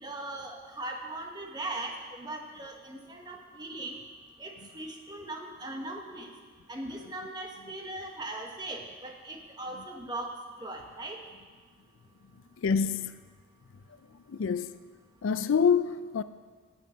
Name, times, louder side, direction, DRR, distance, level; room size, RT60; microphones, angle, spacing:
voice 1, 0.0-4.0 4.4-6.3 6.7-10.3 10.6-11.2, right 2 dB, 20° right, 1.0 m, -39 dB
voice 2, 12.6-13.2 14.3-14.7 15.2-16.2, left 6 dB, 75° left, 0.4 m, -26 dB
11.0 x 7.9 x 6.2 m
head